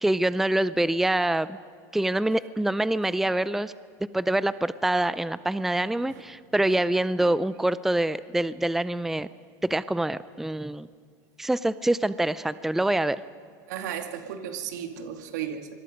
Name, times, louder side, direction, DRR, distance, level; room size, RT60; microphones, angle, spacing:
voice 1, 0.0-1.6 1.9-3.7 4.1-9.3 9.6-10.9 11.4-13.2, right 1 dB, 5° right, 15 dB, 0.5 m, -25 dB
voice 2, 13.7-15.7, right 9 dB, 85° right, 6 dB, 2.2 m, -35 dB
26.0 x 21.5 x 5.3 m, 2.2 s
supercardioid pair, 120°, 9 cm